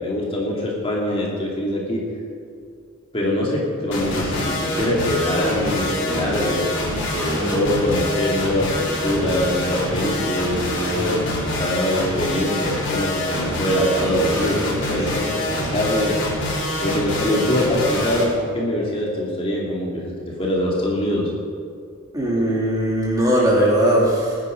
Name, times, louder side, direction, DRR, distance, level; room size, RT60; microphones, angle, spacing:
voice 1, 0.0-2.0 3.1-6.7 7.1-16.2 16.8-21.3, left 1 dB, 25° left, -3 dB, 2.5 m, -23 dB
sound 1, 3.9-18.2, left 1 dB, 60° left, 3.8 m, -26 dB
voice 2, 22.1-24.4, right 1 dB, 15° right, -4 dB, 3.2 m, -19 dB
21.0 x 10.0 x 5.2 m, 2.3 s
head